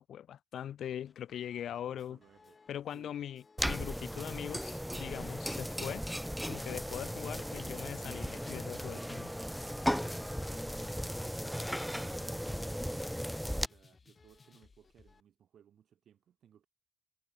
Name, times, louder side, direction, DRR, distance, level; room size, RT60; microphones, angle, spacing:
voice 1, 0.0-2.2 2.7-6.0 6.5-9.3, left 10 dB, 55° left, 0.6 m, -41 dB
sound 1, 0.8-15.2, left 4 dB, 35° left, 5.4 m, -63 dB
voice 2, 1.8-2.6 2.9-3.1 9.9-16.7, right 9 dB, 55° right, 6.9 m, -62 dB
sound 2, 3.6-13.7, equal, ahead, 0.5 m, -36 dB
figure-of-eight pair, 45°, 0 cm